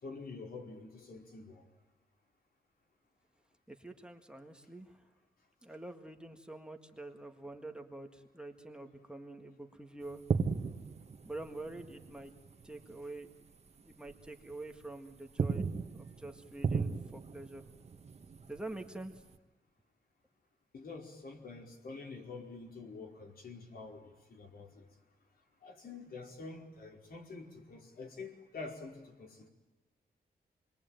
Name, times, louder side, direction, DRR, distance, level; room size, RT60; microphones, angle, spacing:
voice 1, 0.0-1.6 20.7-24.0 24.3-24.8 25.6-29.5, left 3 dB, 65° left, 2 dB, 5.0 m, -47 dB
voice 2, 3.7-5.0 5.6-10.2 11.2-12.3 12.6-13.3 13.9-15.7 16.0-17.6 18.5-19.2, right 2 dB, 5° right, 4 dB, 1.7 m, -46 dB
sound 1, 10.1-13.0 13.3-13.5 14.1-14.8 15.2-19.3, right 5 dB, 40° right, 1.5 m, -37 dB
28.5 x 22.5 x 9.2 m, 1.2 s
wide cardioid pair, 130°, 16 cm